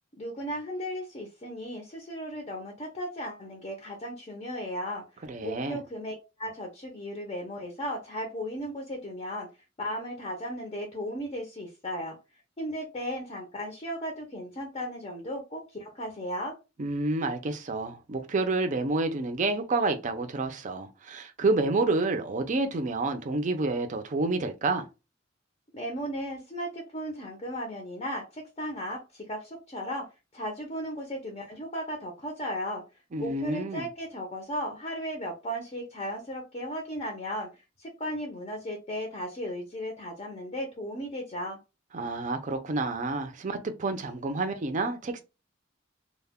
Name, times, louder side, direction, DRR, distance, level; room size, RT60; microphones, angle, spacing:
voice 1, 0.2-5.0 5.4-9.5 9.8-12.2 12.6-16.6 25.7-30.1 30.3-32.8 33.2-37.5 37.8-41.6, equal, 30° left, 0.5 m, -36 dB
voice 2, 5.3-5.8 16.8-24.9 33.1-33.9 41.9-45.2, right 3 dB, 40° right, 0.4 m, -29 dB
2.1 x 2.1 x 3.4 m
head